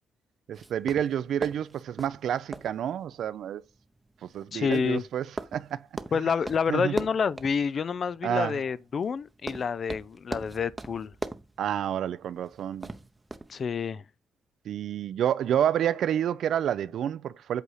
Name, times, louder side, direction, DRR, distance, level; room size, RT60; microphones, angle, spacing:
sound 1, 0.5-13.6, right 2 dB, 15° right, 0.7 m, -42 dB
voice 1, 0.5-3.6 4.2-5.3 5.5-5.8 6.7-6.9 8.2-8.6 11.6-12.9 14.7-17.6, right 10 dB, 70° right, 0.5 m, -29 dB
voice 2, 4.5-5.0 6.1-11.1 13.5-14.0, left 6 dB, 50° left, 0.4 m, -28 dB
8.2 x 3.9 x 4.9 m
cardioid pair, 90°, 0 cm